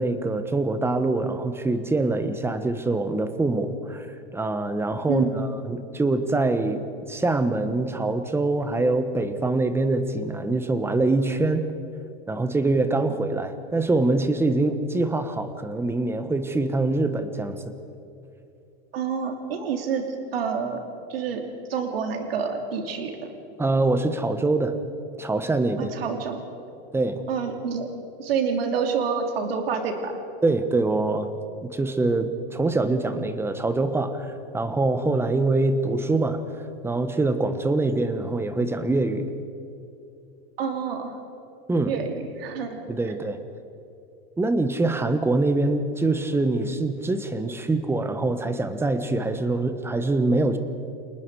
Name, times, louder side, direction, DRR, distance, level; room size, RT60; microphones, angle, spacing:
voice 1, 0.0-4.1 4.3-11.7 12.3-17.6 23.6-24.8 25.2-25.9 26.9-27.2 30.4-31.3 31.6-39.3 41.7-41.9 42.9-43.4 44.4-50.6, right 2 dB, 10° right, 10 dB, 1.3 m, -24 dB
voice 2, 5.1-5.5 18.9-20.1 20.3-20.8 21.1-21.4 21.7-23.3 25.8-26.4 27.3-27.9 28.2-30.2 40.6-41.2 41.9-42.8 43.1-43.2, right 6 dB, 85° right, 4 dB, 3.0 m, -28 dB
28.5 x 19.5 x 4.9 m, 2.7 s
supercardioid pair, 135°, 29 cm